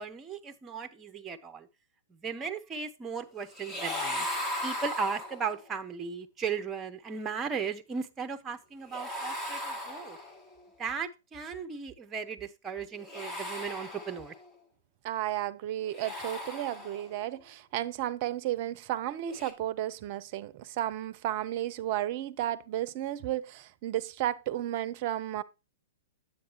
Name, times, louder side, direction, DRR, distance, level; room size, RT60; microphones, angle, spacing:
voice 1, 0.0-1.7 2.1-4.3 4.6-10.2 10.8-14.3, right 6 dB, 20° right, 0.9 m, -36 dB
sound 1, 3.5-5.7 8.9-10.5 13.0-14.5 15.8-17.2 19.3-19.5, left 1 dB, 20° left, 1.9 m, -37 dB
voice 2, 15.0-25.4, right 13 dB, 45° right, 0.6 m, -33 dB
9.1 x 8.0 x 3.0 m
figure-of-eight pair, 115°, 0 cm